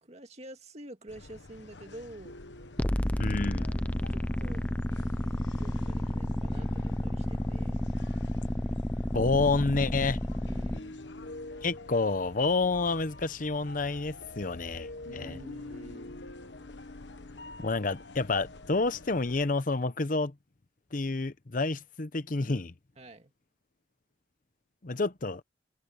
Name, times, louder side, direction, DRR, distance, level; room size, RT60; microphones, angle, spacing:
voice 1, 0.0-2.4 3.7-4.6 5.2-7.9 10.4-11.1 15.1-16.2 23.0-23.3, right 1 dB, 35° right, 2.1 m, -48 dB
sound 1, 1.1-19.5, left 2 dB, 75° left, 1.2 m, -47 dB
sound 2, 2.8-10.8, left 1 dB, 10° left, 0.5 m, -31 dB
voice 2, 3.2-3.7 9.1-10.2 11.6-14.9 15.1-15.4 17.6-20.3 20.9-22.7 24.8-25.4, left 3 dB, 45° left, 0.9 m, -29 dB
head